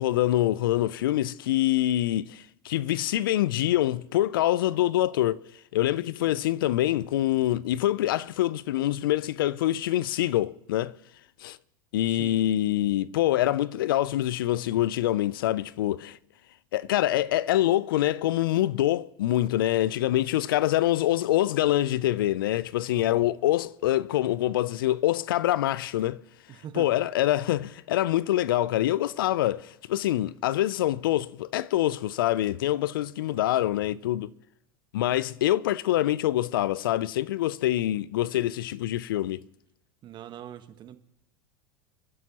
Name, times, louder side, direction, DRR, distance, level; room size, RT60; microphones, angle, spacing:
voice 1, 0.0-5.4 5.7-10.9 11.4-11.6 11.9-16.2 16.7-26.2 26.7-34.3 34.9-39.4, left 14 dB, 75° left, 0.5 m, -25 dB
voice 2, 12.1-12.4 22.9-23.2 26.5-26.9 40.0-41.0, right 10 dB, 40° right, 1.3 m, -42 dB
28.5 x 11.0 x 3.0 m
hypercardioid pair, 85°, 12 cm